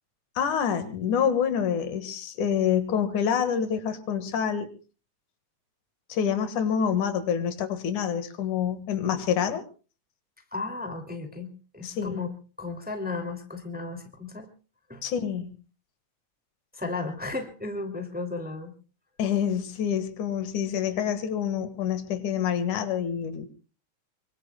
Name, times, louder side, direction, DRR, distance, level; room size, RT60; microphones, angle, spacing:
voice 1, 0.4-4.7 6.1-9.6 11.8-12.2 15.0-15.6 19.2-23.5, left 8 dB, 85° left, 10 dB, 3.1 m, -27 dB
voice 2, 10.5-11.5 11.7-14.5 14.9-15.1 16.7-18.7, left 3 dB, 5° right, 5 dB, 2.1 m, -34 dB
25.0 x 24.0 x 2.3 m, 0.35 s
omnidirectional pair, 3.4 m